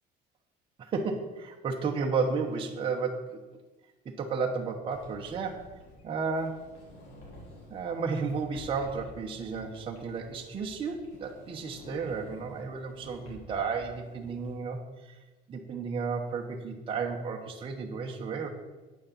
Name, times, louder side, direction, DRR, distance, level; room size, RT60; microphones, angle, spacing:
voice 1, 0.8-3.4 4.0-5.7 6.0-6.7 7.7-14.8 15.5-18.5, right 5 dB, 30° right, 1 dB, 1.1 m, -33 dB
Sliding door, 4.9-14.5, equal, 85° left, 3.8 m, -51 dB
9.4 x 6.4 x 7.3 m, 1.2 s
cardioid pair, 150°, 19 cm